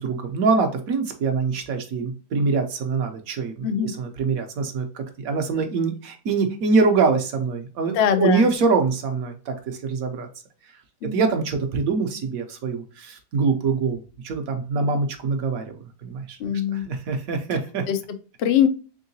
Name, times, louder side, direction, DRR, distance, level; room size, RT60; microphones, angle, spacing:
voice 1, 0.0-10.3 11.0-15.8 16.0-16.4 16.7-17.8, right 4 dB, 65° right, 6 dB, 1.1 m, -24 dB
voice 2, 3.6-3.9 7.9-8.5 11.0-11.4 16.4-16.9 17.9-18.7, left 9 dB, 90° left, 8 dB, 0.5 m, -23 dB
3.7 x 3.6 x 2.7 m, 0.36 s
omnidirectional pair, 1.8 m